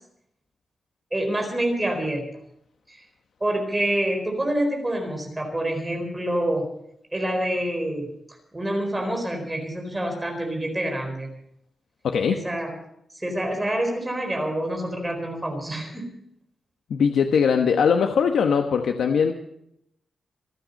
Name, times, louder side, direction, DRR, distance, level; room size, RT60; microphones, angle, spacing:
voice 1, 1.1-2.2 2.9-3.0 3.4-6.7 7.1-11.3 12.3-12.8 13.1-16.1, right 1 dB, 15° right, 2 dB, 4.3 m, -27 dB
voice 2, 12.0-12.4 16.9-19.3, left 6 dB, 90° left, 5 dB, 1.2 m, -20 dB
26.5 x 9.2 x 5.4 m, 0.74 s
wide cardioid pair, 145°, 0 cm